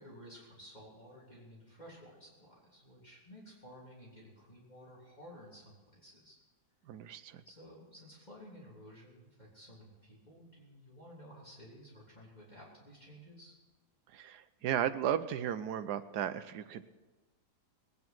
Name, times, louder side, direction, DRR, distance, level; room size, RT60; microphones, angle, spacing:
voice 1, 0.0-6.4 7.4-13.6, equal, 25° left, -5 dB, 3.5 m, -54 dB
voice 2, 6.9-7.4 14.1-16.9, right 10 dB, 80° right, 12 dB, 1.2 m, -35 dB
20.0 x 9.6 x 6.1 m, 1.2 s
omnidirectional pair, 1.8 m